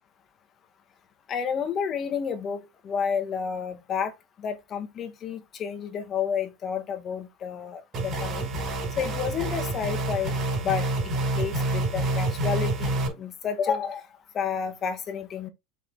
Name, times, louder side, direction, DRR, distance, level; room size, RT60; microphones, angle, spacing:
voice 1, 1.3-4.1 4.4-8.5 9.0-10.3 10.6-14.1 14.3-15.5, left 7 dB, 30° left, 1.6 m, -30 dB
sound 1, 7.9-13.1, right 2 dB, 30° right, 6.2 m, -28 dB
7.3 x 6.2 x 3.9 m
supercardioid pair, 150°, 0 cm